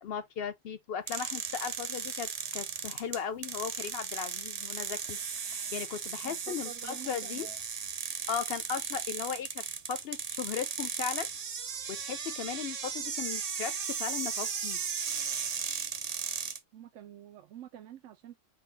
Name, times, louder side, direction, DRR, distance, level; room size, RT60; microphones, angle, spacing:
voice 1, 0.0-7.5 8.3-9.6 9.9-11.3 11.9-14.8, left 7 dB, 60° left, 0.7 m, -37 dB
sound 1, 1.1-16.6, right 6 dB, 45° right, 0.5 m, -36 dB
voice 2, 6.2-7.6 16.7-18.4, right 10 dB, 80° right, 0.9 m, -48 dB
3.8 x 2.2 x 4.4 m
omnidirectional pair, 1.3 m